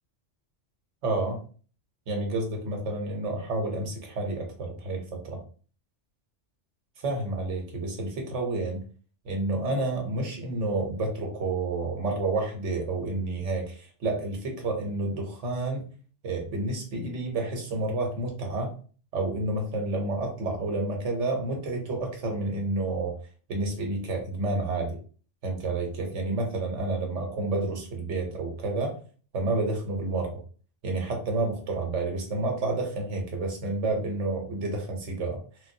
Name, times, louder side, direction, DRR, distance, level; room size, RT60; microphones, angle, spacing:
voice 1, 1.0-1.4 2.1-5.4 7.0-8.8 9.2-15.9 16.2-18.7 19.1-23.1 23.5-25.0 25.4-29.0 29.3-30.4 30.8-35.4, right 2 dB, 85° right, 2 dB, 1.2 m, -30 dB
3.3 x 2.5 x 2.6 m, 0.41 s
omnidirectional pair, 1.2 m